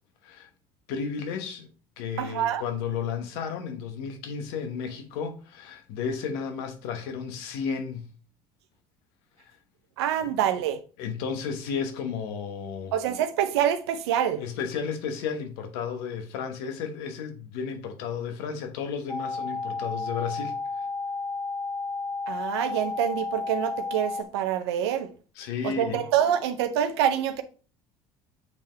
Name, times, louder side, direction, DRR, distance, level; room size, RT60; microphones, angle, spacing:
voice 1, 0.9-1.7 2.0-8.1 9.4-9.5 10.2-10.3 11.0-12.9 14.4-20.6 25.4-26.0, left 6 dB, 80° left, 1.1 m, -33 dB
voice 2, 2.2-2.6 10.0-10.8 12.9-14.4 22.3-25.1 25.6-27.4, right 10 dB, 90° right, 0.6 m, -26 dB
sound 1, 19.1-24.2, left 3 dB, 15° left, 0.6 m, -32 dB
8.1 x 3.6 x 3.3 m
supercardioid pair, 80°, 13 cm